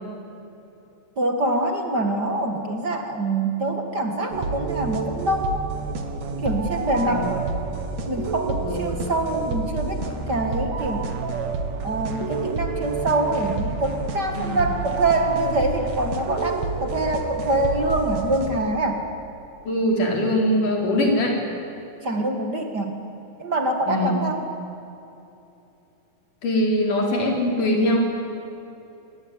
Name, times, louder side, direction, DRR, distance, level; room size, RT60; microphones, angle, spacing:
voice 1, 1.2-5.6 6.4-7.4 8.1-11.1 11.8-19.0 22.0-23.0 23.4-24.4, right 2 dB, 35° right, 4 dB, 2.2 m, -25 dB
sound 1, 4.3-18.6, right 4 dB, 65° right, 3.1 m, -29 dB
voice 2, 7.1-7.5 8.6-9.0 14.4-14.6 19.7-21.4 23.9-24.2 26.4-28.0, left 1 dB, 85° left, 0 dB, 5.8 m, -22 dB
26.5 x 21.5 x 9.6 m, 2.9 s
omnidirectional pair, 3.5 m